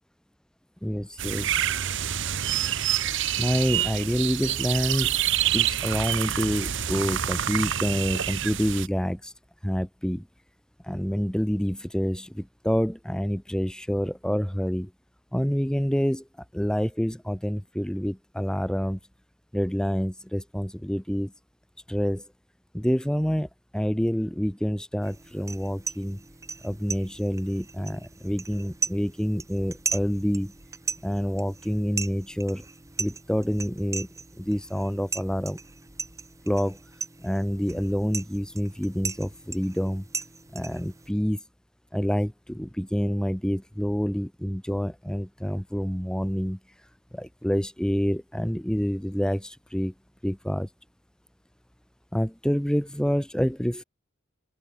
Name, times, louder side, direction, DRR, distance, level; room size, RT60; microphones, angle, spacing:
voice 1, 0.8-1.6 3.4-5.1 5.5-9.3 9.6-10.3 10.8-14.9 15.3-16.3 16.5-19.0 19.5-21.3 21.9-22.2 22.7-26.2 26.6-30.5 31.0-32.6 33.0-34.1 34.4-35.6 36.5-36.8 37.2-40.0 40.5-41.4 41.9-46.6 47.1-49.9 50.2-50.7 52.1-53.8, equal, 5° left, 1.1 m, -27 dB
sound 1, 1.2-8.9, right 10 dB, 60° right, 1.1 m, -27 dB
sound 2, 25.0-41.1, right 5 dB, 15° right, 1.5 m, -38 dB
open air
head